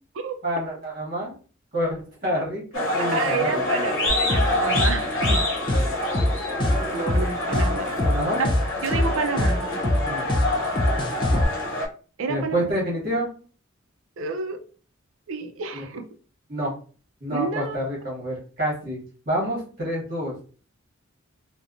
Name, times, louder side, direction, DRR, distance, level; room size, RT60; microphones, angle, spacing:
voice 1, 0.4-1.3 1.7-3.7 8.0-8.4 10.0-10.3 12.3-13.3 15.7-15.8 16.5-16.7 17.2-19.0 19.3-20.4, equal, 45° right, -5 dB, 1.1 m, -28 dB
sound 1, 2.7-11.9, left 2 dB, 65° left, 0.8 m, -26 dB
voice 2, 3.0-5.4 6.9-8.1 8.4-8.5 8.8-9.6 12.2-12.7 14.2-14.6 15.3-16.0 17.3-17.8, right 4 dB, 75° right, 7 dB, 0.4 m, -29 dB
sound 2, 4.1-11.4, left 1 dB, 25° left, 0.3 m, -23 dB
2.8 x 2.1 x 2.4 m, 0.39 s
head